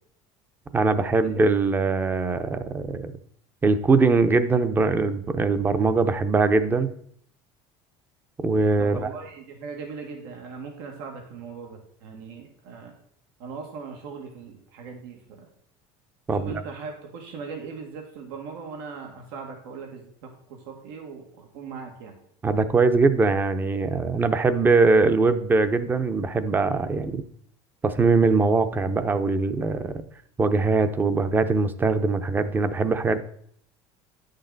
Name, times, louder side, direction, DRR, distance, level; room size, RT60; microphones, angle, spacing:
voice 1, 0.7-3.1 3.6-6.9 8.4-9.1 16.3-16.5 22.4-27.2 27.8-30.0 30.4-33.2, right 3 dB, 15° right, 11 dB, 0.7 m, -22 dB
voice 2, 8.8-12.9 13.4-15.5 16.3-22.2, right 5 dB, 85° right, 2 dB, 1.9 m, -39 dB
10.0 x 6.5 x 3.9 m, 0.67 s
cardioid pair, 140°, 12 cm